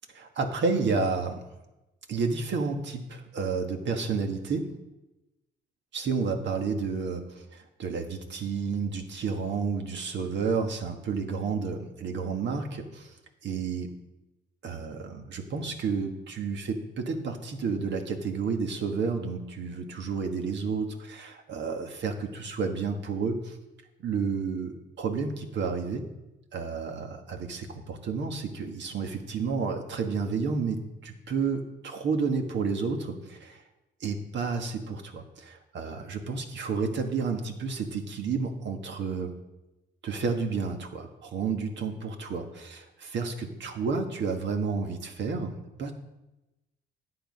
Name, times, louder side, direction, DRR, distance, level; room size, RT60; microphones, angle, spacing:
voice 1, 0.3-1.4 2.1-4.7 5.9-13.1 13.4-13.9 14.6-23.6 24.0-26.1 26.5-33.6 34.0-39.3 40.0-45.9, right 5 dB, 65° right, 4 dB, 1.6 m, -31 dB
10.5 x 7.9 x 5.3 m, 0.98 s
cardioid pair, 90°, 20 cm